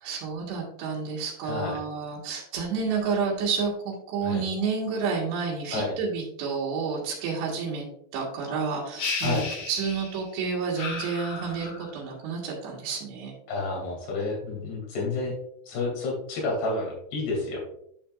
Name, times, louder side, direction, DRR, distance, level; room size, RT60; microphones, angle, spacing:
voice 1, 0.0-13.3, right 5 dB, 85° right, -4 dB, 3.8 m, -30 dB
voice 2, 1.4-1.8 4.2-4.4 5.7-5.9 9.2-9.5 13.5-15.3 15.7-17.6, left 3 dB, 70° left, -2 dB, 4.7 m, -30 dB
sound 1, 9.0-10.3 10.8-12.0, left 4 dB, 55° left, 1.9 m, -34 dB
10.0 x 5.9 x 2.5 m, 0.70 s
omnidirectional pair, 4.9 m